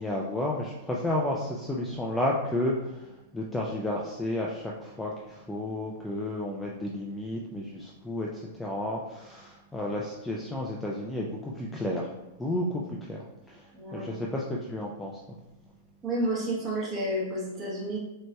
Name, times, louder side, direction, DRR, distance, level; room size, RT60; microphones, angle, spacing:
voice 1, 0.0-3.0 3.3-12.1 12.4-12.8 13.1-13.6 13.9-15.1, left 1 dB, 5° left, -3 dB, 0.3 m, -32 dB
voice 2, 13.7-14.1 16.0-18.0, right 1 dB, 20° right, -4 dB, 1.1 m, -30 dB
6.0 x 2.8 x 2.2 m, 1.0 s
supercardioid pair, 160°, 0 cm